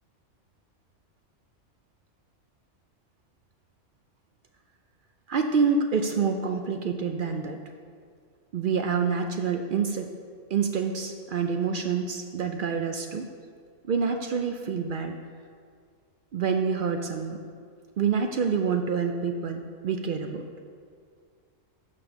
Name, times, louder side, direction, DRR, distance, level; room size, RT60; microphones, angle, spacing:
voice 1, 5.3-7.6 8.5-10.1 10.5-13.3 13.8-15.1 16.3-17.4 18.0-20.4, right 5 dB, 60° right, 5 dB, 0.5 m, -27 dB
6.6 x 6.0 x 5.8 m, 2.1 s
omnidirectional pair, 1.3 m